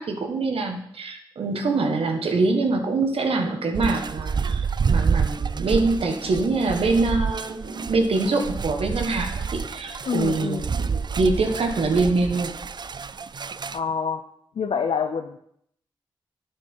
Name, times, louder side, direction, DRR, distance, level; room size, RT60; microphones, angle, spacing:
voice 1, 0.0-12.5, right 3 dB, 80° right, 4 dB, 1.5 m, -24 dB
sound 1, 3.7-13.8, right 5 dB, 50° right, 0.4 m, -28 dB
voice 2, 10.1-10.6 13.7-14.2 14.6-15.4, left 6 dB, 80° left, 7 dB, 0.6 m, -26 dB
9.1 x 6.7 x 5.6 m, 0.71 s
cardioid pair, 55°, 10 cm